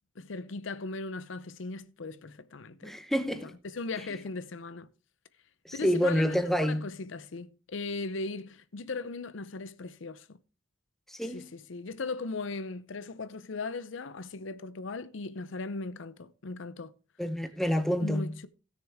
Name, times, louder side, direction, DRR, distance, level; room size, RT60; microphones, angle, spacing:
voice 1, 0.2-3.0 3.6-4.9 5.7-10.4 11.3-16.9 18.0-18.5, left 3 dB, 70° left, 0.7 m, -38 dB
voice 2, 2.8-3.5 5.6-6.8 11.1-11.5 17.2-18.3, equal, ahead, 0.8 m, -28 dB
16.5 x 6.6 x 3.5 m
head